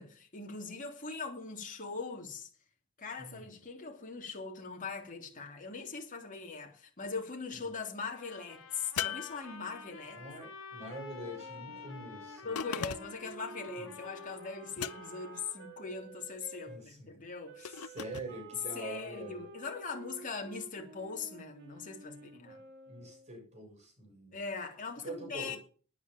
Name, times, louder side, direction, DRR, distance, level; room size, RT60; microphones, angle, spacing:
voice 1, 0.0-2.5 3.0-10.2 12.4-17.8 18.7-22.6 24.3-25.6, left 4 dB, 40° left, 3.0 m, -41 dB
voice 2, 3.2-3.5 7.6-7.7 10.2-12.5 13.8-13.9 16.7-17.2 17.6-19.4 22.9-24.4 25.0-25.6, right 1 dB, 30° right, 7.3 m, -45 dB
Trumpet, 8.0-15.8, left 5 dB, 65° left, 5.0 m, -50 dB
sound 1, 9.0-10.1 12.6-13.3 14.8-15.4 17.6-18.3, left 9 dB, 85° left, 0.6 m, -39 dB
Wind instrument woodwind instrument, 10.9-16.8 17.4-23.3, right 3 dB, 50° right, 2.4 m, -51 dB
10.0 x 9.6 x 7.2 m
head